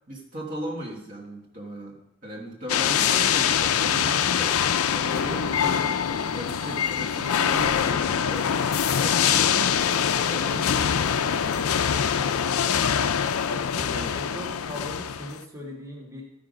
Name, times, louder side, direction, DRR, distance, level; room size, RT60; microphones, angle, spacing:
voice 1, 0.1-8.6 9.0-11.0, right 1 dB, 35° right, -2 dB, 1.3 m, -37 dB
sound 1, 2.7-15.4, left 8 dB, 75° left, 0.5 m, -24 dB
voice 2, 12.6-13.1 13.5-16.2, left 1 dB, 15° right, -2 dB, 1.6 m, -39 dB
14.0 x 5.1 x 5.1 m, 0.90 s
head